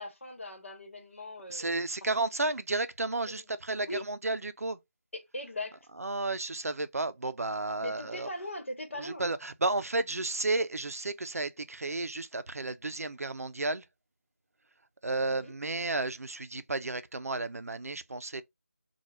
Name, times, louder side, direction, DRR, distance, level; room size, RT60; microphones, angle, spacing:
voice 1, 0.0-1.8 3.3-3.4 3.9-4.1 5.1-5.8 7.8-9.2 15.3-15.5, left 1 dB, 55° left, 1.1 m, -40 dB
voice 2, 1.5-4.8 6.0-8.3 9.0-13.8 15.0-18.4, right 2 dB, 80° right, 0.4 m, -32 dB
2.9 x 2.3 x 3.2 m
figure-of-eight pair, 180°, 8 cm